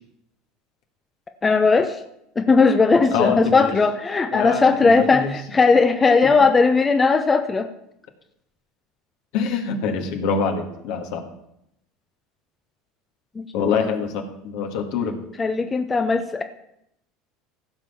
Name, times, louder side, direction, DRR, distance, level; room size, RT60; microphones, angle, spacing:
voice 1, 1.4-2.0 2.4-7.7 13.4-13.5 15.4-16.4, left 4 dB, 25° left, 7 dB, 0.9 m, -18 dB
voice 2, 3.1-3.8 4.3-5.3 6.2-6.3 9.3-11.2 13.5-15.2, left 6 dB, 65° left, 4 dB, 1.8 m, -25 dB
15.5 x 5.4 x 6.9 m, 0.78 s
hypercardioid pair, 75°, 0 cm